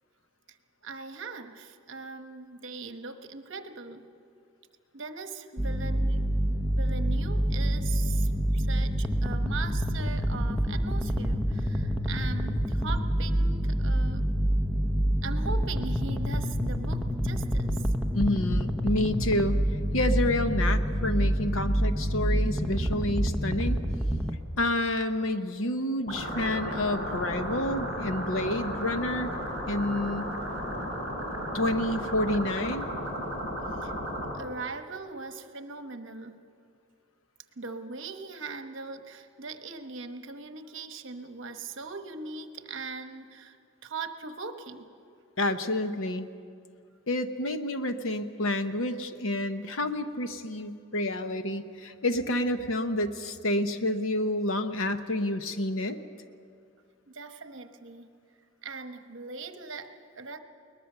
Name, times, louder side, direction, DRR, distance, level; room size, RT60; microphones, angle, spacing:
voice 1, 0.8-4.1 4.9-6.3 6.7-14.3 15.2-17.9 33.8-33.9 34.3-36.3 37.6-43.6 43.8-44.9 57.1-58.1 58.6-60.4, right 4 dB, 60° right, 7 dB, 1.1 m, -40 dB
sound 1, 5.6-24.3, equal, 5° left, 0.9 m, -27 dB
voice 2, 18.1-19.6 19.9-23.8 24.6-29.3 29.7-30.3 31.5-32.9 45.4-46.3 47.1-56.0, left 1 dB, 70° left, 9 dB, 1.0 m, -29 dB
sound 2, 26.1-34.3, equal, 35° left, 4.6 m, -34 dB
22.0 x 20.0 x 6.8 m, 2.4 s
head